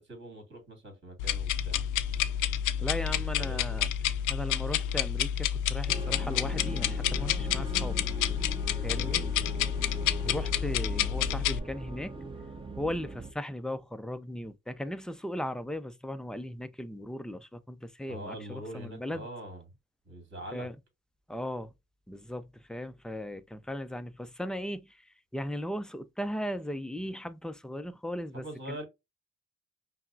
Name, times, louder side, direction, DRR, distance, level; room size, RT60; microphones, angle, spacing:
voice 1, 0.0-1.8 2.8-3.9 8.8-9.3 18.1-19.6 20.1-20.7 28.3-28.8, equal, 40° right, 2.0 m, -43 dB
sound 1, 1.2-11.6, left 10 dB, 85° left, 0.5 m, -29 dB
voice 2, 2.8-3.9 4.3-8.1 8.8-9.3 10.2-12.2 12.8-19.3 20.5-20.8 21.3-21.7 22.1-28.8, equal, ahead, 0.3 m, -37 dB
sound 2, 5.9-13.3, right 2 dB, 15° right, 0.7 m, -40 dB
5.7 x 2.0 x 2.6 m
cardioid pair, 90°, 30 cm